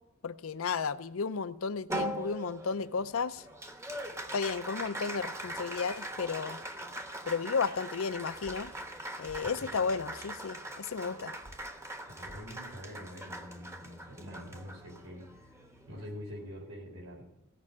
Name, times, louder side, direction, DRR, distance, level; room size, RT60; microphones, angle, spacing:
voice 1, 0.2-3.5 4.3-6.6 7.3-8.7 9.2-11.3, left 5 dB, 70° left, 13 dB, 0.5 m, -33 dB
Applause, 1.9-16.5, right 1 dB, 15° right, 1.0 m, -41 dB
sound 1, 8.4-8.6 9.2-9.4 11.4-11.6 12.2-12.4, equal, 50° right, 4.5 m, -50 dB
voice 2, 12.2-15.6 15.9-17.2, equal, 70° right, 0 dB, 4.3 m, -45 dB
16.0 x 5.5 x 8.4 m, 0.91 s
head